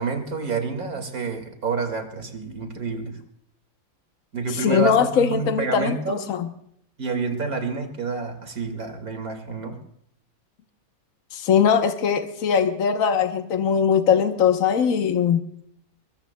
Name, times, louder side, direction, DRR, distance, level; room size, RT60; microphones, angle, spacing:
voice 1, 0.0-3.2 4.3-6.2 7.0-9.8, right 4 dB, 80° right, 5 dB, 2.7 m, -28 dB
voice 2, 4.6-6.5 11.3-15.4, left 7 dB, 70° left, 6 dB, 1.4 m, -21 dB
24.0 x 22.0 x 2.2 m, 0.70 s
omnidirectional pair, 1.5 m